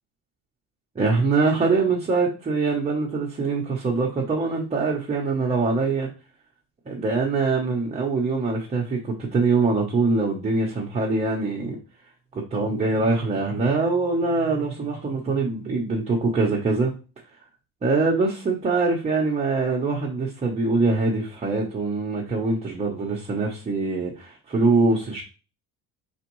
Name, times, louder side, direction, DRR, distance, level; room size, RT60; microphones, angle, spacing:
voice 1, 1.0-6.1 6.9-11.8 12.3-16.9 17.8-25.2, right 3 dB, 20° right, 0.8 m, -23 dB
4.9 x 3.5 x 3.0 m
cardioid pair, 130°, 34 cm